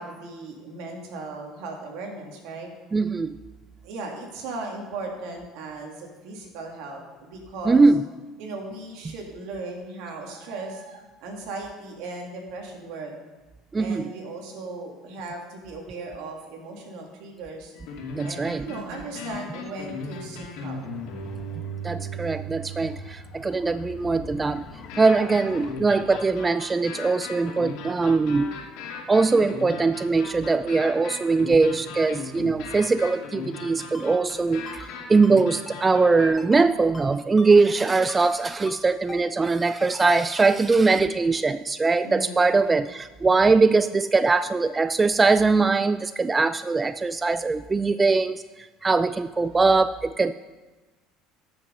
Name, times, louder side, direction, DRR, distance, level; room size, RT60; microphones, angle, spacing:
voice 1, 0.0-2.7 3.8-7.9 8.4-13.1 13.8-17.7 18.2-20.8 42.0-42.5, right 3 dB, 75° right, 1 dB, 2.6 m, -37 dB
voice 2, 2.9-3.4 7.7-8.0 13.7-14.1 18.1-18.7 21.8-24.6 25.0-28.5 29.1-50.3, right 4 dB, 20° right, 13 dB, 0.4 m, -21 dB
sound 1, 17.8-23.1 24.9-36.3, left 2 dB, 75° left, 2.4 m, -37 dB
sound 2, 20.7-25.7, left 6 dB, 50° left, 1.5 m, -45 dB
Ringtone, 33.9-34.1 34.7-34.9 35.2-35.4 35.7-35.8 36.4-36.6 36.9-37.1 37.4-37.5 38.1-38.4 38.7-38.8 39.1-39.2 39.8-40.1 40.4-40.5, left 2 dB, 20° left, 2.3 m, -42 dB
13.0 x 6.6 x 5.3 m, 1.2 s
supercardioid pair, 90°, 0 cm